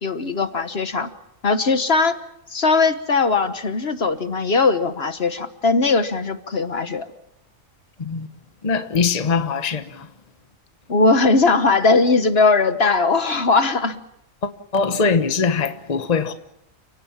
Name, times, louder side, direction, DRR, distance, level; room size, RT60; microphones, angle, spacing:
voice 1, 0.0-1.1 1.4-2.2 2.5-7.1 10.9-14.0, left 3 dB, 50° left, 1.4 m, -19 dB
voice 2, 8.0-8.3 8.6-10.1 14.4-16.3, left 5 dB, 35° left, 1.1 m, -22 dB
30.0 x 17.5 x 7.3 m
omnidirectional pair, 1.4 m